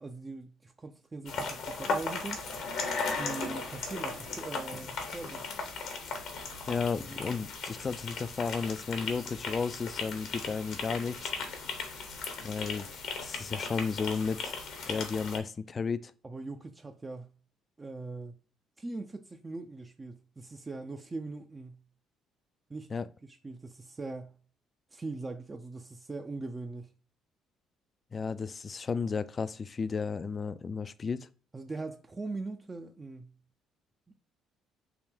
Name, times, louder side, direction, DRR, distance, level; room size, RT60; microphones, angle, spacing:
voice 1, 0.0-2.5 3.1-5.5 7.0-7.2 16.2-17.3 17.8-18.4 18.8-21.8 22.7-22.9 23.2-24.4 24.9-26.9 31.5-33.3, right 3 dB, 25° right, 0.4 m, -41 dB
sound 1, 1.3-15.4, left 4 dB, 65° left, 0.8 m, -37 dB
voice 2, 6.7-11.3 12.4-12.9 13.2-14.6 14.9-16.1 22.9-23.0 28.1-31.3, left 5 dB, 40° left, 0.3 m, -33 dB
3.3 x 2.2 x 3.5 m
hypercardioid pair, 55°, 0 cm